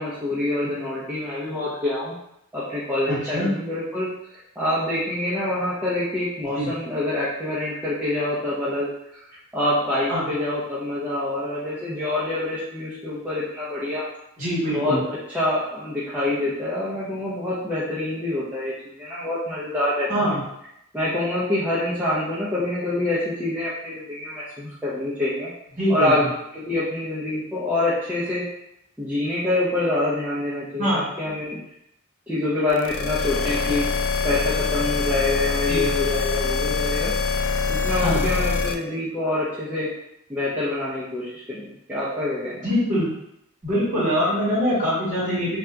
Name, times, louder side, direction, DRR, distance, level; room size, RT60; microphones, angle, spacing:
voice 1, 0.0-2.1 2.5-4.1 4.6-8.9 9.5-14.0 14.7-20.4 20.9-25.5 25.9-26.2 26.5-28.4 29.0-31.6 32.3-33.8 34.2-37.1 37.7-39.9 40.3-41.6 41.9-42.7, left 1 dB, 5° right, -10 dB, 0.5 m, -26 dB
voice 2, 3.1-3.5 6.5-6.7 10.1-10.2 14.4-15.0 20.1-20.4 25.8-26.1 30.8-31.1 35.7-35.8 38.0-38.2 42.6-43.1 43.6-45.6, equal, 35° right, -8 dB, 1.4 m, -23 dB
sound 1, 32.8-38.7, left 4 dB, 55° left, 0.3 m, -24 dB
2.7 x 2.3 x 3.4 m, 0.79 s
head